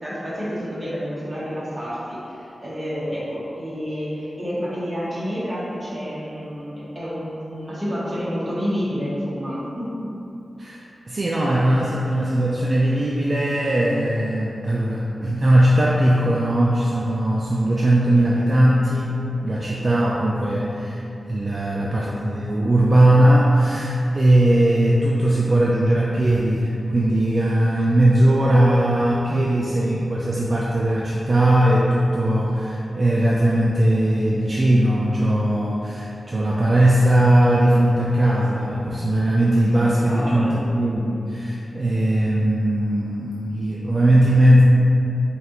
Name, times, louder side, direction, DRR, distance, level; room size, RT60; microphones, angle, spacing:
voice 1, 0.0-9.9 21.7-21.9 40.1-40.6, equal, 15° right, -9 dB, 1.1 m, -29 dB
voice 2, 10.6-19.2 19.4-21.0 21.3-44.6, right 1 dB, 40° right, -5 dB, 0.3 m, -19 dB
5.1 x 2.4 x 2.9 m, 2.8 s
wide cardioid pair, 135°, 0 cm